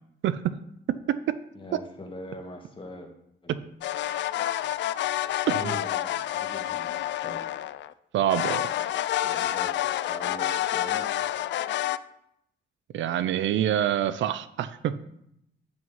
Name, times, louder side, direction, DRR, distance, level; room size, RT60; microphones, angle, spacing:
voice 1, 0.2-0.6 0.9-1.4 1.7-1.8 3.5-3.6 5.5-5.8 8.1-8.7 12.9-15.0, right 11 dB, 70° right, 14 dB, 0.5 m, -26 dB
voice 2, 1.5-3.1 3.4-3.6 5.4-7.6 9.2-11.4, left 1 dB, 25° left, 3 dB, 2.0 m, -42 dB
sound 1, 3.8-7.9 8.3-12.0, left 13 dB, 65° left, 0.4 m, -28 dB
9.6 x 5.2 x 5.5 m, 0.77 s
cardioid pair, 90°, 20 cm